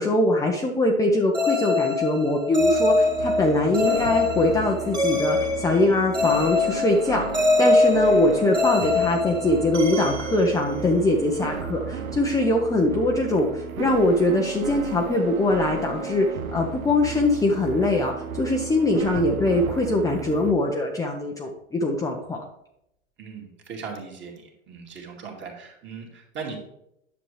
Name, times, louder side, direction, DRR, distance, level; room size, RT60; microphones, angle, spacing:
voice 1, 0.0-22.4, left 2 dB, 10° left, 0 dB, 0.7 m, -22 dB
sound 1, 1.3-11.2, left 2 dB, 10° right, 2.0 m, -24 dB
sound 2, 2.6-20.5, right 5 dB, 80° right, 0.9 m, -34 dB
voice 2, 23.2-26.6, right 5 dB, 25° right, 0 dB, 2.3 m, -38 dB
9.8 x 7.2 x 3.3 m, 0.79 s
hypercardioid pair, 115°, 42 cm